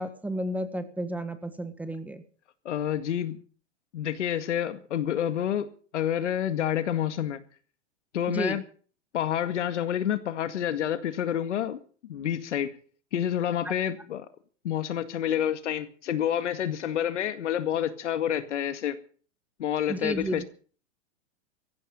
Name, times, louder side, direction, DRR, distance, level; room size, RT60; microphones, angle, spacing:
voice 1, 0.0-2.2 8.3-8.6 19.9-20.4, right 1 dB, 5° right, 1.7 m, -32 dB
voice 2, 2.7-3.4 3.9-5.7 5.9-7.4 8.1-8.6 9.1-11.8 12.1-12.8 13.1-14.3 14.6-19.0 19.6-20.4, left 10 dB, 85° left, 2.0 m, -28 dB
16.5 x 15.0 x 5.5 m
hypercardioid pair, 135°, 35 cm